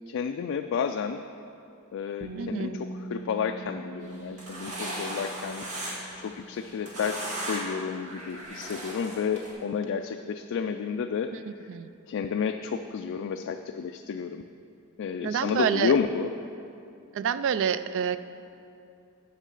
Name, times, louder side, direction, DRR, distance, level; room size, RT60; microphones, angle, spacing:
voice 1, 0.1-1.2 1.9-11.4 12.1-14.4 15.0-16.3, left 6 dB, 60° left, 6 dB, 0.3 m, -31 dB
Bass guitar, 2.2-8.5, right 2 dB, 30° right, 0.7 m, -44 dB
voice 2, 2.3-2.8 11.3-11.9 15.2-15.9 17.1-18.2, right 8 dB, 60° right, 13 dB, 0.3 m, -28 dB
sound 1, 4.1-6.2 6.6-7.8 8.1-9.5, right 1 dB, 90° right, 1.8 m, -36 dB
9.2 x 6.6 x 5.3 m, 2.6 s
head